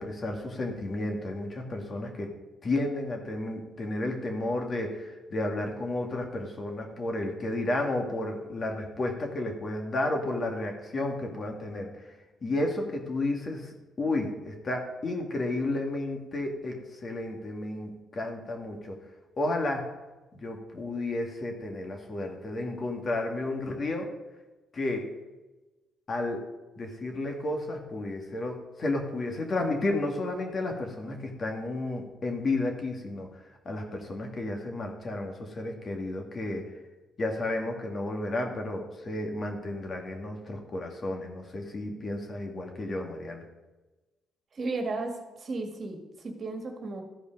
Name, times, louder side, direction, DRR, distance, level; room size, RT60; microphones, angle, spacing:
voice 1, 0.0-2.3 2.6-11.9 12.4-13.7 14.0-19.0 19.4-19.9 20.3-24.1 24.7-25.1 26.1-26.4 26.8-33.3 33.7-36.7 37.2-43.4, left 2 dB, 40° left, 2 dB, 1.9 m, -32 dB
voice 2, 44.5-47.0, right 3 dB, 45° right, 4 dB, 1.8 m, -34 dB
14.0 x 5.1 x 5.2 m, 1.1 s
cardioid pair, 90°, 0 cm